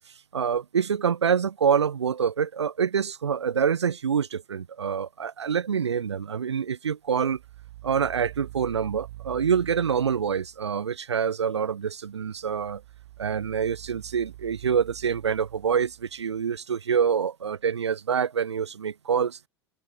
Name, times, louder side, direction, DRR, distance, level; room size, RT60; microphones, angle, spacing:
voice 1, 0.3-7.4 7.8-12.8 13.2-19.4, right 7 dB, 80° right, 0.6 m, -26 dB
sound 1, 7.2-10.9 12.2-16.6, right 17 dB, 60° right, 2.6 m, -46 dB
open air
figure-of-eight pair, 90°, 14 cm